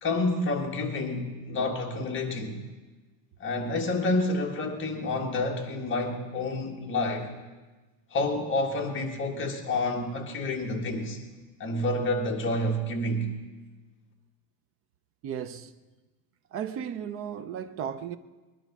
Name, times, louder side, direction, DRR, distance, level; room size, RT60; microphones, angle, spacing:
voice 1, 0.0-2.6 3.4-7.3 8.1-11.2 11.6-13.3, left 2 dB, 25° left, 1.8 m, -29 dB
voice 2, 15.2-15.7 16.5-18.2, right 8 dB, 30° right, 0.4 m, -35 dB
21.0 x 11.5 x 6.0 m
cardioid pair, 155°, 48 cm